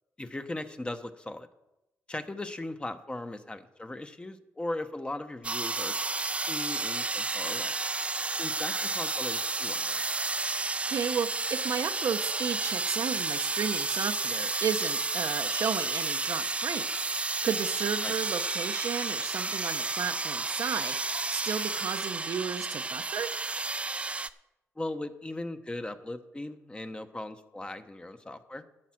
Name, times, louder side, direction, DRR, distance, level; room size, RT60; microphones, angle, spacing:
voice 1, 0.2-1.5 2.1-5.9 6.5-7.7 8.4-10.1 18.0-18.1 24.8-28.6, left 2 dB, 20° left, 8 dB, 0.9 m, -38 dB
sound 1, 5.4-24.3, right 3 dB, 20° right, 0.4 m, -31 dB
voice 2, 10.9-23.3, right 7 dB, 65° right, 9 dB, 0.7 m, -33 dB
12.0 x 7.4 x 5.9 m, 0.92 s
cardioid pair, 80°, 6 cm